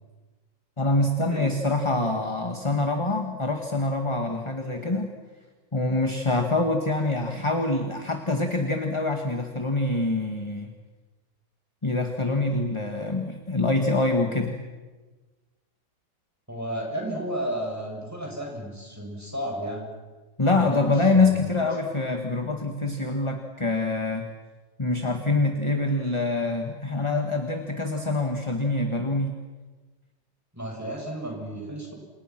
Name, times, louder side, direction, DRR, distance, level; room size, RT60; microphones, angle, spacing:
voice 1, 0.8-5.1 5.7-10.7 11.8-14.6 20.4-24.3 24.8-29.4, left 2 dB, 15° left, 4 dB, 1.7 m, -25 dB
voice 2, 16.5-19.9 20.5-21.5 30.5-31.9, right 1 dB, 5° right, 0 dB, 7.2 m, -33 dB
29.0 x 28.0 x 6.1 m, 1.3 s
omnidirectional pair, 2.1 m